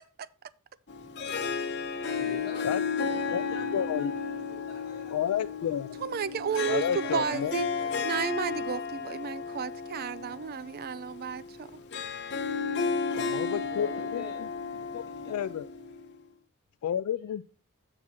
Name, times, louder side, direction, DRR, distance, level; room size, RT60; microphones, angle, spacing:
Harp, 0.9-16.2, left 5 dB, 50° left, 1.0 m, -33 dB
voice 1, 1.9-5.7 6.0-6.8 7.0-8.0 13.6-14.4 14.8-15.4, left 1 dB, 20° left, 1.4 m, -48 dB
voice 2, 3.7-4.1 5.1-6.0 6.7-7.5 13.1-14.5 14.9-15.7 16.8-17.4, left 9 dB, 75° left, 0.3 m, -31 dB
voice 3, 6.0-7.7 8.0-11.8, right 7 dB, 45° right, 0.4 m, -33 dB
7.7 x 5.9 x 4.3 m
head